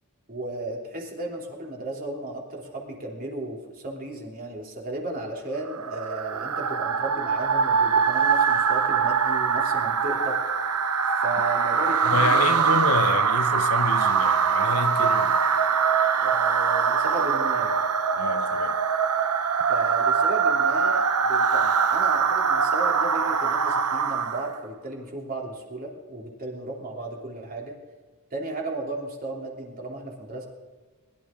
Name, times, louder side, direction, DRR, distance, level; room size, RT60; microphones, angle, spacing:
voice 1, 0.3-10.4 11.2-12.7 13.1-13.2 16.2-17.8 19.7-27.7 28.3-30.5, right 2 dB, 40° right, 3.0 m, -34 dB
sound 1, 5.6-24.6, right 6 dB, 90° right, 0.8 m, -23 dB
voice 2, 12.0-15.4 18.1-18.8, left 3 dB, 90° left, 1.1 m, -28 dB
22.0 x 12.0 x 3.8 m
head